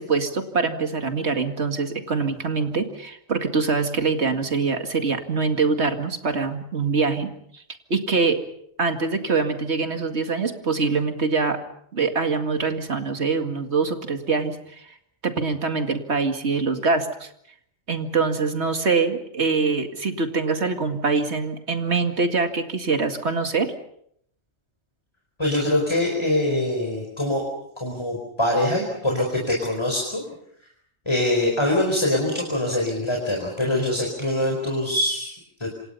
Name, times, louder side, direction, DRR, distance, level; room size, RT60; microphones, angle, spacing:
voice 1, 0.0-7.6 7.9-8.4 8.8-11.6 11.9-14.9 15.2-17.3 17.9-23.7, right 4 dB, 65° right, 6 dB, 2.4 m, -24 dB
voice 2, 25.4-27.5 27.8-30.2 31.1-35.7, left 1 dB, 20° left, 1 dB, 4.7 m, -24 dB
27.5 x 26.5 x 5.6 m, 0.69 s
omnidirectional pair, 1.2 m